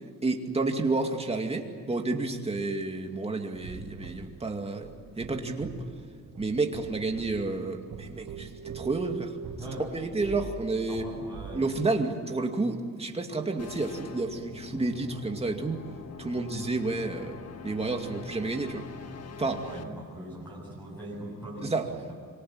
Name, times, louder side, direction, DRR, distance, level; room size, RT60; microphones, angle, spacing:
voice 1, 0.2-5.8 6.4-9.3 9.9-11.1 11.5-15.9 16.2-18.8 19.4-19.6 21.6-21.9, right 3 dB, 20° right, 3 dB, 2.4 m, -30 dB
sound 1, 3.5-11.6, right 6 dB, 80° right, 3.9 m, -43 dB
voice 2, 9.6-9.9 10.9-11.7 19.6-22.1, right 1 dB, 5° left, -5 dB, 7.5 m, -41 dB
sound 2, 13.6-19.8, left 5 dB, 50° left, 1.4 m, -44 dB
25.5 x 24.5 x 8.8 m, 2.1 s
wide cardioid pair, 165°, 33 cm